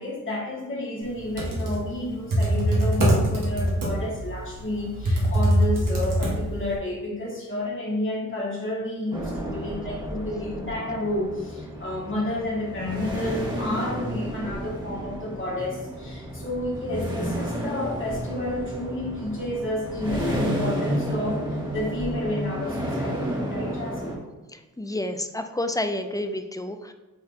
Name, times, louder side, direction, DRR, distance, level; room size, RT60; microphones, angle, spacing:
voice 1, 0.0-24.2, left 1 dB, 40° left, -5 dB, 2.1 m, -31 dB
Computer keyboard, 1.2-6.8, right 1 dB, 85° right, 1.8 m, -23 dB
sound 1, 9.1-24.1, equal, 15° right, 1.7 m, -31 dB
voice 2, 24.5-26.9, left 1 dB, 10° left, 7 dB, 0.4 m, -30 dB
8.7 x 4.2 x 2.8 m, 1.2 s
wide cardioid pair, 130°, 31 cm